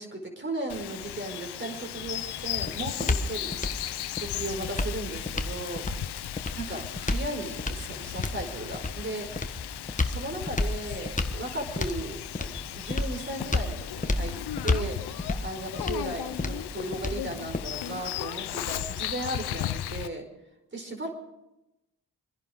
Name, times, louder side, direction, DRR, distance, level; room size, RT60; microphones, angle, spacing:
voice 1, 0.0-3.6 4.1-9.6 10.0-14.4 14.6-15.0 15.4-20.3 20.7-21.1, right 1 dB, 30° right, 3 dB, 4.9 m, -36 dB
Bird vocalization bird call bird song, 0.7-20.1, left 12 dB, 70° left, 0.8 m, -36 dB
sound 1, 1.9-18.0, left 2 dB, 20° left, 1.4 m, -32 dB
25.0 x 10.5 x 5.2 m, 0.93 s
supercardioid pair, 60°, 41 cm